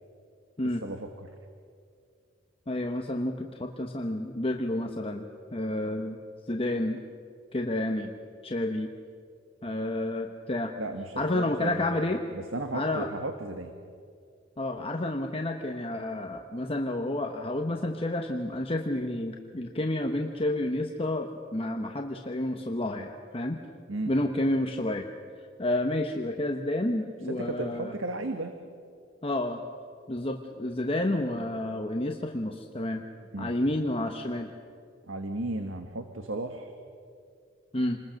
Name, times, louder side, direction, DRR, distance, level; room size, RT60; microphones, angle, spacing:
voice 1, 0.6-1.3 10.8-12.0 12.3-13.7 23.9-24.1 27.3-28.5 33.3-33.5 35.1-36.7, right 2 dB, 80° right, 6 dB, 1.5 m, -35 dB
voice 2, 2.7-5.2 5.5-6.2 6.5-7.0 7.5-8.1 8.4-8.9 9.6-10.7 11.2-12.2 12.7-13.1 14.6-23.6 24.1-25.1 25.6-27.9 29.2-29.6 30.1-33.0 33.4-34.5 37.7-38.0, left 1 dB, 30° left, 3 dB, 1.1 m, -30 dB
28.0 x 21.0 x 6.5 m, 2.3 s
head